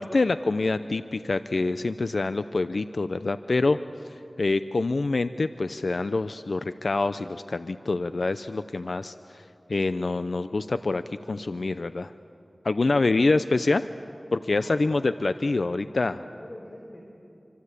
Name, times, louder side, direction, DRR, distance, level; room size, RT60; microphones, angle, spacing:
voice 1, 0.0-3.8 4.4-9.4 9.7-11.0 11.3-12.1 12.6-13.9 14.3-16.2, left 3 dB, 75° left, 11 dB, 0.6 m, -26 dB
voice 2, 12.9-13.4 14.6-15.1 16.2-17.1, left 1 dB, 40° left, 0 dB, 4.8 m, -45 dB
26.0 x 26.0 x 8.4 m, 2.7 s
cardioid pair, 40°, 0 cm